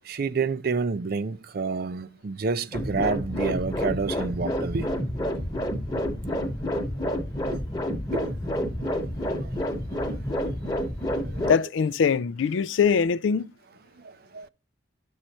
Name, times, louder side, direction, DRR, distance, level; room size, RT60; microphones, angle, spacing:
voice 1, 0.1-4.9 8.1-8.3 8.8-8.9 9.3-9.5 11.2-11.5 14.3-14.5, right 4 dB, 50° right, 0.4 m, -29 dB
sound 1, 2.7-11.5, equal, 20° left, 1.1 m, -29 dB
voice 2, 11.4-13.5, left 6 dB, 75° left, 0.4 m, -22 dB
10.0 x 6.4 x 4.2 m
head